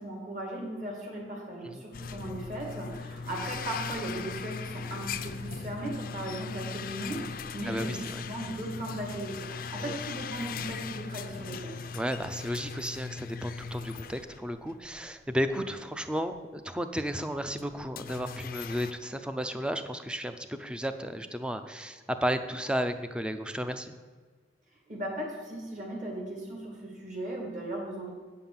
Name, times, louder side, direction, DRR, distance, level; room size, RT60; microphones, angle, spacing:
voice 1, 0.0-11.8 24.9-28.1, right 1 dB, 45° right, 0 dB, 2.4 m, -37 dB
sound 1, 1.9-15.0 15.4-15.5 16.3-16.4 17.5-18.9, left 5 dB, 55° left, 0.5 m, -39 dB
voice 2, 7.7-8.2 9.8-9.9 11.9-23.9, equal, 5° right, 9 dB, 0.5 m, -33 dB
8.6 x 5.6 x 7.3 m, 1.5 s
head